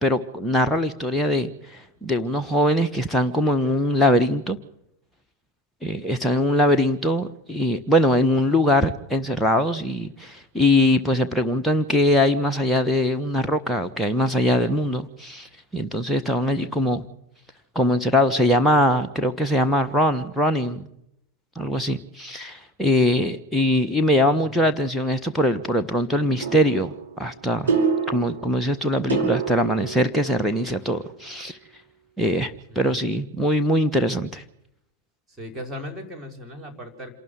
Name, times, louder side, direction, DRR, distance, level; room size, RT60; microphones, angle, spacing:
voice 1, 0.0-4.6 5.8-17.0 17.7-20.9 21.5-27.7 28.1-31.6 32.2-34.4, left 1 dB, 5° left, 4 dB, 1.3 m, -22 dB
sound 1, 26.4-30.9, right 5 dB, 80° right, 3.7 m, -28 dB
voice 2, 32.7-33.3 35.4-37.1, left 1 dB, 15° right, 1 dB, 4.3 m, -38 dB
27.0 x 12.5 x 7.7 m, 0.77 s
figure-of-eight pair, 90°, 0 cm